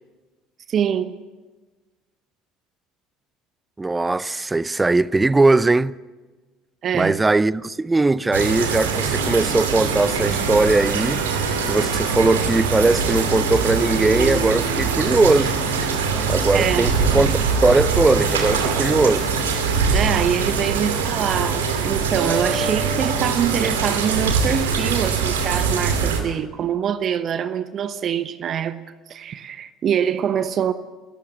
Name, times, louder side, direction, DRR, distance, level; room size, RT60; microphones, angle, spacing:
voice 1, 0.7-1.2 6.8-7.1 16.5-17.0 19.9-28.8 29.1-30.7, right 8 dB, 45° right, 1.0 m, -24 dB
voice 2, 3.8-5.9 6.9-11.2 11.7-15.6 16.3-19.3, right 3 dB, 15° right, 0.6 m, -19 dB
sound 1, 8.3-26.2, right 5 dB, 80° right, 2.5 m, -22 dB
28.0 x 14.5 x 7.1 m
figure-of-eight pair, 60°, 0 cm